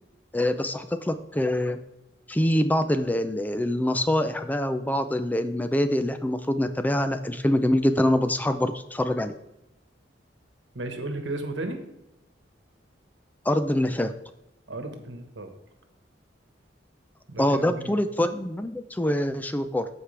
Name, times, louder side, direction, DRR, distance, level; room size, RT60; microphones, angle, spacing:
voice 1, 0.3-1.8 2.3-9.3 13.5-14.1 17.4-19.9, left 1 dB, 10° left, 9 dB, 0.4 m, -25 dB
voice 2, 10.7-11.8 14.7-15.5 17.3-18.0, right 2 dB, 80° right, 6 dB, 1.3 m, -34 dB
14.0 x 4.8 x 3.3 m, 0.89 s
head